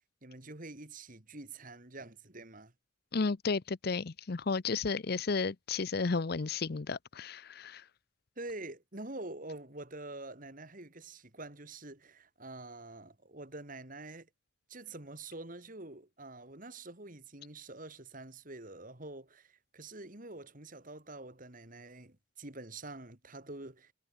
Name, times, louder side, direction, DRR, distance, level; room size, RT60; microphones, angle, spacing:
voice 1, 0.2-2.7 8.4-14.3 14.7-23.9, right 2 dB, 40° right, 2.6 m, -46 dB
voice 2, 3.1-7.8, left 4 dB, 50° left, 0.6 m, -33 dB
head